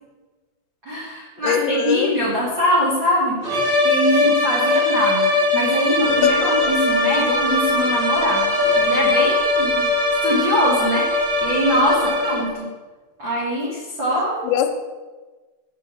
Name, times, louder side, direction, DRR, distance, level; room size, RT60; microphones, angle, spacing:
voice 1, 0.8-9.9 10.2-12.7 13.2-14.4, equal, 85° right, -7 dB, 1.0 m, -23 dB
voice 2, 1.4-2.1 4.3-4.4 6.2-6.7 14.4-14.8, left 8 dB, 85° left, 6 dB, 2.9 m, -22 dB
sound 1, 3.4-12.6, left 2 dB, 35° right, 2.0 m, -20 dB
Wind instrument woodwind instrument, 6.0-12.2, left 3 dB, 70° left, 1.4 m, -30 dB
6.5 x 6.3 x 6.9 m, 1.3 s
omnidirectional pair, 5.3 m